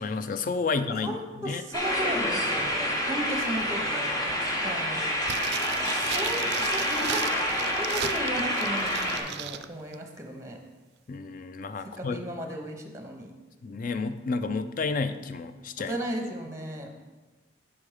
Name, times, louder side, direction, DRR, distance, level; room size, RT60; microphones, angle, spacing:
voice 1, 0.0-1.6 11.1-12.2 13.6-16.0, left 4 dB, 45° left, 10 dB, 0.4 m, -31 dB
voice 2, 0.9-5.4 5.7-10.6 11.8-13.3 15.9-17.0, right 1 dB, 15° right, 3 dB, 0.8 m, -36 dB
sound 1, 1.7-9.2, equal, 20° left, 0.9 m, -28 dB
sound 2, 5.2-9.7 9.9-10.0, right 10 dB, 60° right, 0.3 m, -36 dB
6.2 x 5.1 x 4.9 m, 1.2 s
head